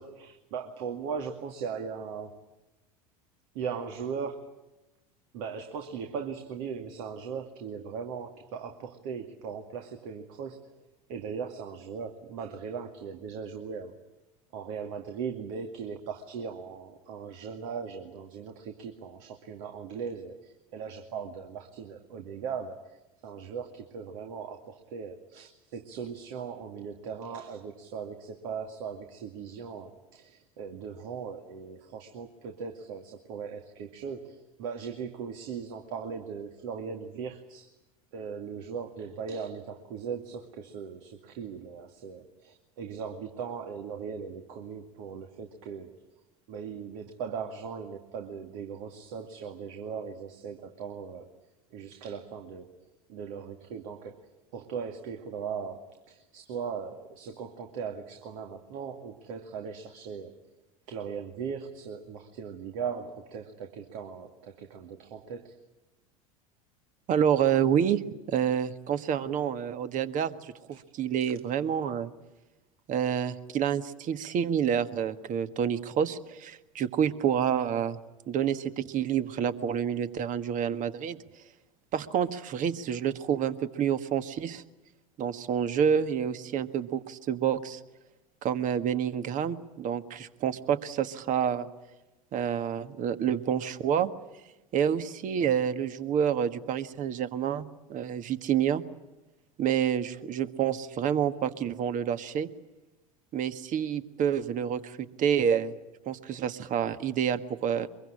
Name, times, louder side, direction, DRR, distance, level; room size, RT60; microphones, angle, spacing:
voice 1, 0.0-2.4 3.5-4.7 5.3-10.7 11.1-14.0 14.5-37.7 38.1-45.9 46.5-51.3 51.7-60.4 60.9-65.6 70.7-71.1, right 6 dB, 60° right, 4 dB, 2.3 m, -39 dB
voice 2, 67.1-68.0 68.3-72.1 72.9-78.0 78.3-81.2 81.9-84.6 85.2-87.8 88.4-91.7 92.3-94.1 94.7-98.8 99.6-102.5 103.3-105.7 106.0-107.9, right 8 dB, 45° right, 11 dB, 1.6 m, -28 dB
24.0 x 23.0 x 10.0 m, 1.0 s
hypercardioid pair, 80°, 19 cm